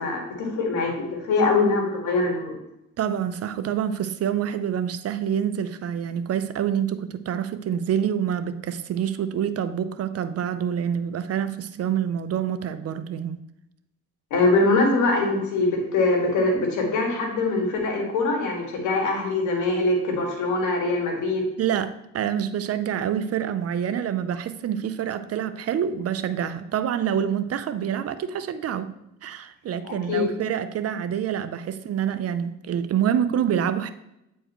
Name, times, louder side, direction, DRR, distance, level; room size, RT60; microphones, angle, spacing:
voice 1, 0.0-2.6 14.3-21.5 29.8-30.2, left 3 dB, 80° left, 1 dB, 2.1 m, -23 dB
voice 2, 3.0-13.4 21.6-28.9 29.2-33.9, right 9 dB, 55° right, 12 dB, 0.6 m, -27 dB
8.9 x 4.5 x 3.1 m, 0.86 s
supercardioid pair, 75°, 30 cm